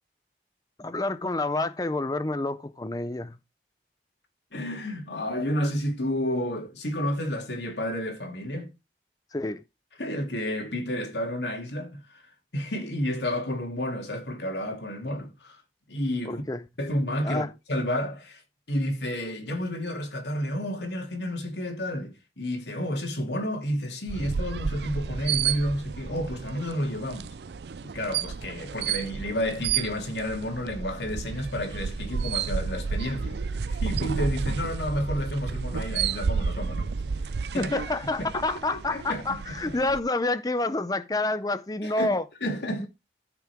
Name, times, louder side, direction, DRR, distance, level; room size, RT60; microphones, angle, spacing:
voice 1, 0.8-3.4 9.3-9.6 16.3-16.6 17.2-17.5 37.6-42.2 42.8-42.9, left 2 dB, 20° left, 0.5 m, -28 dB
voice 2, 4.5-8.7 10.0-12.2 12.5-15.6 15.9-16.4 16.8-17.4 17.7-18.4 18.7-27.3 27.8-33.4 33.7-36.9 37.5-37.7 38.9-39.2 41.8-42.1 42.4-42.9, equal, 80° left, 2.8 m, -30 dB
sound 1, 24.1-40.0, right 6 dB, 75° right, 0.5 m, -31 dB
14.0 x 6.0 x 3.5 m
head